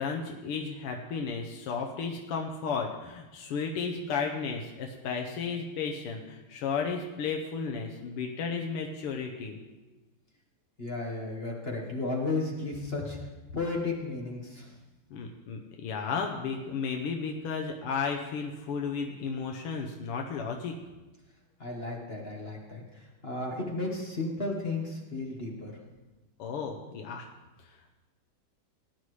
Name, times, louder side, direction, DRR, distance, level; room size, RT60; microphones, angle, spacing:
voice 1, 0.0-9.6 15.1-20.8 26.4-27.3 27.6-27.8, left 5 dB, 85° left, 2 dB, 1.8 m, -33 dB
voice 2, 10.8-13.2 13.5-14.8 21.6-25.7, left 2 dB, 35° left, -1 dB, 1.3 m, -34 dB
18.0 x 9.7 x 3.2 m, 1.1 s
omnidirectional pair, 2.4 m